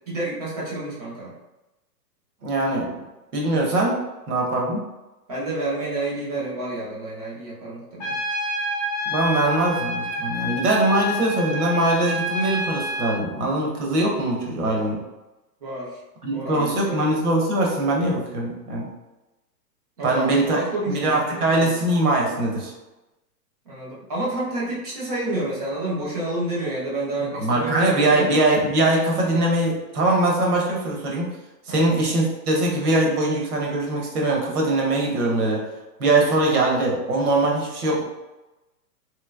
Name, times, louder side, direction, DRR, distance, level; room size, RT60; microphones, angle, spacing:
voice 1, 0.1-1.3 5.3-8.2 15.6-16.0 16.3-17.0 20.0-21.7 23.6-28.3 31.7-31.9, right 2 dB, 25° right, -6 dB, 0.6 m, -29 dB
voice 2, 2.4-2.9 3.3-4.0 4.3-4.9 9.1-15.0 16.2-18.9 20.0-20.6 20.9-22.7 27.4-31.3 31.7-35.6 36.0-38.0, right 2 dB, 65° right, -1 dB, 1.2 m, -22 dB
Trumpet, 8.0-13.2, equal, 25° left, 0.8 m, -28 dB
3.2 x 3.0 x 2.4 m, 1.0 s
hypercardioid pair, 165°, 48 cm